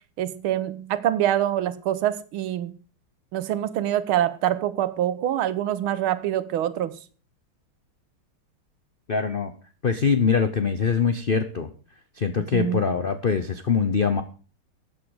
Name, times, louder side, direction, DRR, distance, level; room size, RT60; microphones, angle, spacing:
voice 1, 0.2-2.7 3.3-7.0 12.5-12.8, right 11 dB, 90° right, 1.7 m, -25 dB
voice 2, 9.1-9.5 9.8-11.7 12.1-14.2, left 5 dB, 75° left, 0.5 m, -23 dB
13.5 x 8.6 x 4.8 m
omnidirectional pair, 2.3 m